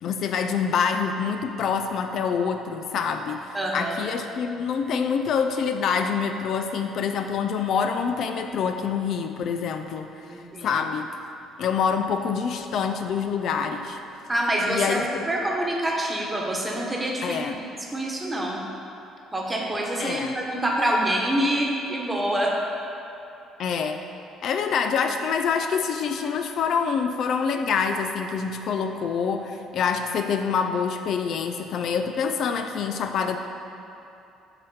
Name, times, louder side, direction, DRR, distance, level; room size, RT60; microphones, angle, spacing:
voice 1, 0.0-10.1 10.6-11.1 11.6-14.0 14.7-15.3 17.2-17.6 20.0-20.4 23.6-24.0 24.4-33.4, left 6 dB, 65° left, 6 dB, 0.3 m, -26 dB
voice 2, 3.5-4.0 10.2-10.7 14.3-17.6 17.9-18.6 19.3-22.5, right 1 dB, 15° right, -1 dB, 1.1 m, -26 dB
7.1 x 3.2 x 4.8 m, 2.8 s
supercardioid pair, 75°, 0 cm